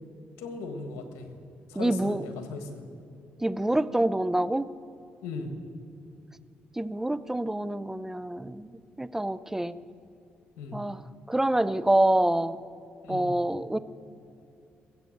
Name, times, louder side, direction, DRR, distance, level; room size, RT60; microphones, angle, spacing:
voice 1, 0.4-1.3 1.7-2.8 5.2-5.5 10.6-10.8 13.0-13.3, left 3 dB, 90° left, 7 dB, 1.6 m, -37 dB
voice 2, 1.8-2.2 3.4-4.7 6.8-8.7 9.0-9.7 10.7-11.0 11.3-12.6 13.1-13.8, right 1 dB, 10° right, 15 dB, 0.6 m, -26 dB
20.5 x 8.3 x 6.5 m, 2.7 s
supercardioid pair, 70°, 5 cm